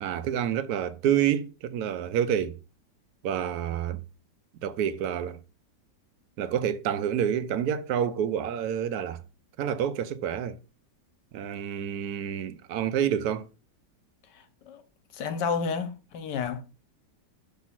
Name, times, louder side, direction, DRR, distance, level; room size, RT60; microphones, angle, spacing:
voice 1, 0.0-2.6 3.2-4.0 4.5-5.4 6.4-9.2 9.6-10.6 11.3-13.5, right 9 dB, 70° right, 1.0 m, -28 dB
voice 2, 14.3-14.8 15.1-16.6, left 5 dB, 75° left, 1.5 m, -31 dB
6.0 x 3.5 x 5.6 m
omnidirectional pair, 1.9 m